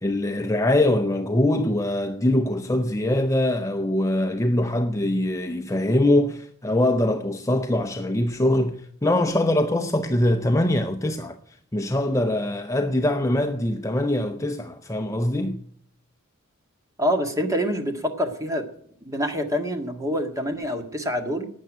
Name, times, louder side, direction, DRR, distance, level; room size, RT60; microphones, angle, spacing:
voice 1, 0.0-11.4 11.7-15.6, left 1 dB, 15° left, 0.6 m, -23 dB
voice 2, 17.0-18.6 19.0-21.5, equal, 15° right, 1.7 m, -26 dB
12.5 x 9.2 x 9.1 m
head